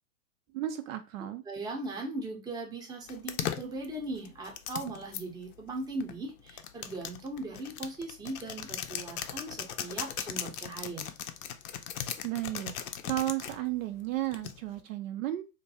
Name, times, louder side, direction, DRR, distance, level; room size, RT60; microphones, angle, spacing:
voice 1, 0.5-1.4 12.2-12.7 13.0-15.4, right 14 dB, 60° right, 0.5 m, -33 dB
voice 2, 1.2-11.1, right 2 dB, 10° right, 0.7 m, -39 dB
sound 1, 3.1-5.2 6.0-13.6 14.3-14.8, left 10 dB, 65° left, 0.6 m, -38 dB
2.6 x 2.2 x 4.0 m
hypercardioid pair, 110°, 45 cm